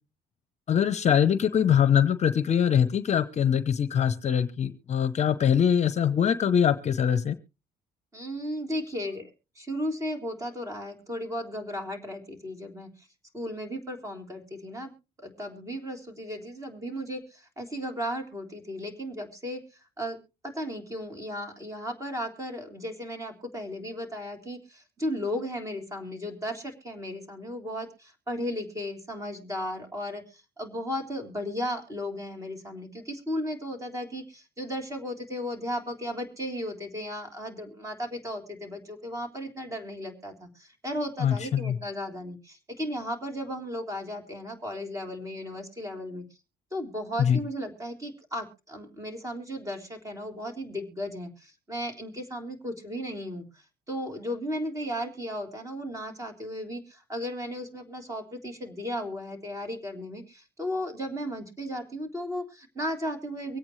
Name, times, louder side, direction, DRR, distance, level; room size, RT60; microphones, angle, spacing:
voice 1, 0.7-7.4 41.2-41.7 47.2-47.4, left 8 dB, 40° left, 12 dB, 0.8 m, -23 dB
voice 2, 8.1-13.1 13.3-14.9 15.2-20.2 20.4-46.2 46.7-63.6, equal, 20° right, 4 dB, 3.5 m, -35 dB
24.0 x 8.7 x 3.2 m, 0.31 s
cardioid pair, 110°, 17 cm